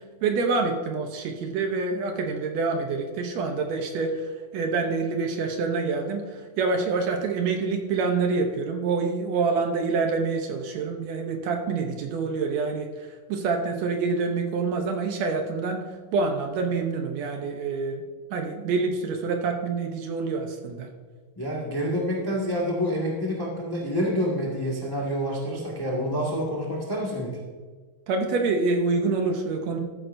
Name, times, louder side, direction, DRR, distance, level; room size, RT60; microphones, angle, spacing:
voice 1, 0.2-12.9 13.3-15.8 16.1-18.0 18.3-20.9 28.1-29.8, right 4 dB, 70° right, 4 dB, 1.8 m, -26 dB
voice 2, 21.4-27.3, equal, 20° left, -4 dB, 0.6 m, -27 dB
14.0 x 9.3 x 2.6 m, 1.5 s
omnidirectional pair, 3.6 m